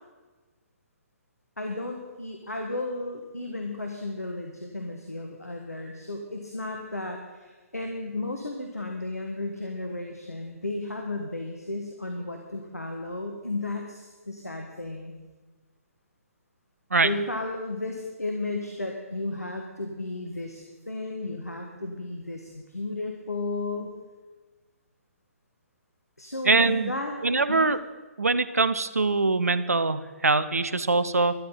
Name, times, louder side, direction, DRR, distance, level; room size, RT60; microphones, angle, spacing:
voice 1, 1.6-15.1 17.0-23.9 26.2-27.2 27.5-27.7, left 2 dB, 85° left, 3 dB, 1.7 m, -34 dB
voice 2, 26.4-26.9 27.2-27.8 28.2-31.3, right 3 dB, 75° right, 13 dB, 0.8 m, -23 dB
12.5 x 12.5 x 5.7 m, 1.3 s
figure-of-eight pair, 130°, 8 cm